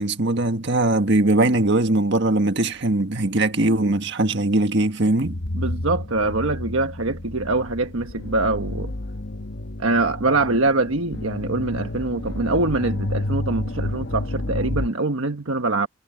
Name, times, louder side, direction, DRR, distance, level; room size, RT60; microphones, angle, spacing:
voice 1, 0.0-5.4, right 2 dB, 55° right, 1.6 m, -20 dB
sound 1, 5.2-14.9, left 1 dB, 55° left, 1.1 m, -30 dB
voice 2, 5.5-8.9 9.8-15.9, right 2 dB, 70° right, 1.4 m, -23 dB
head